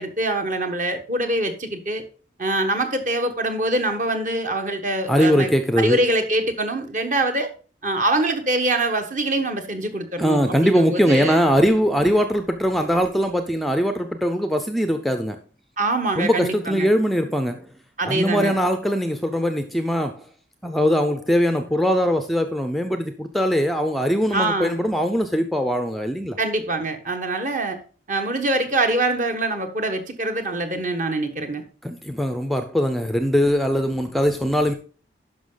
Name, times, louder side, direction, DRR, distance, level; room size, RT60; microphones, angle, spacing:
voice 1, 0.0-2.0 2.4-5.5 5.8-7.5 7.8-11.4 15.8-16.9 18.0-18.6 24.3-24.7 26.4-27.8 28.1-31.6, right 2 dB, 45° right, 1.4 m, -24 dB
voice 2, 5.1-6.0 10.2-15.4 16.2-17.7 18.1-20.2 20.6-26.4 31.8-34.7, equal, ahead, 0.5 m, -21 dB
11.5 x 5.5 x 3.9 m
head